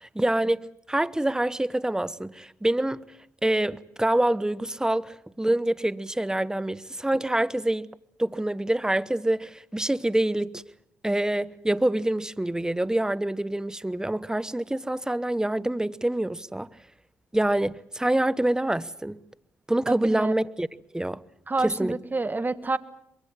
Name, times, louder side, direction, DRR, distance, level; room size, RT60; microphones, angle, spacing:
voice 1, 0.0-3.0 3.4-7.9 8.2-10.6 11.0-16.7 17.3-19.2 19.7-20.7 20.9-21.2 21.6-22.0, right 1 dB, 10° right, 1.0 m, -26 dB
voice 2, 21.5-22.8, right 3 dB, 25° right, 1.6 m, -28 dB
24.5 x 22.5 x 7.5 m
supercardioid pair, 50°, 7 cm